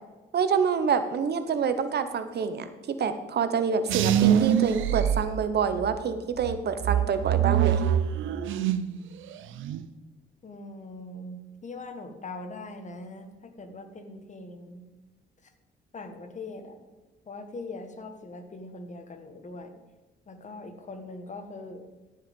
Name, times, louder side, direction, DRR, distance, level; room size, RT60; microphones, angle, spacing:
voice 1, 0.3-2.7 3.0-7.8, right 6 dB, 55° right, 10 dB, 1.0 m, -27 dB
sound 1, 3.9-5.9 6.4-9.0 9.3-9.8, right 10 dB, 80° right, 0.6 m, -24 dB
voice 2, 10.4-13.3 13.6-14.9 15.9-16.8 17.3-19.7 20.3-21.8, left 2 dB, 35° left, 7 dB, 1.5 m, -41 dB
15.0 x 5.8 x 5.3 m, 1.2 s
cardioid pair, 90°, 20 cm